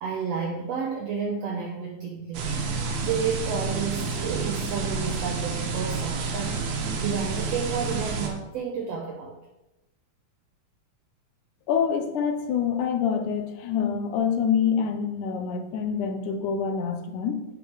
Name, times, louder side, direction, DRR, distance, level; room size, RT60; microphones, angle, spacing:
voice 1, 0.0-2.5 3.0-6.6 7.0-9.4, right 6 dB, 85° right, 1 dB, 1.4 m, -31 dB
sound 1, 2.3-8.3, right 4 dB, 65° right, 2.4 m, -29 dB
voice 2, 11.7-17.4, left 7 dB, 75° left, 6 dB, 2.1 m, -26 dB
9.8 x 5.1 x 4.4 m, 0.94 s
omnidirectional pair, 3.9 m